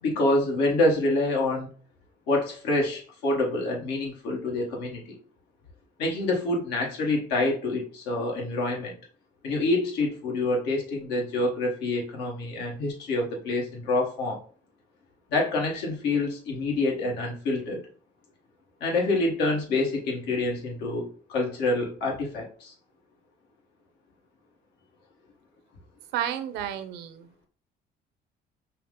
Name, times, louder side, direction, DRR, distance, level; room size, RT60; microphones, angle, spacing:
voice 1, 0.0-1.7 2.3-5.2 6.0-8.9 9.4-14.4 15.3-17.8 18.8-22.7, left 2 dB, 85° left, -1 dB, 1.1 m, -27 dB
voice 2, 26.1-27.3, right 10 dB, 90° right, 10 dB, 0.6 m, -31 dB
5.6 x 2.1 x 3.6 m, 0.42 s
cardioid pair, 110°, 17 cm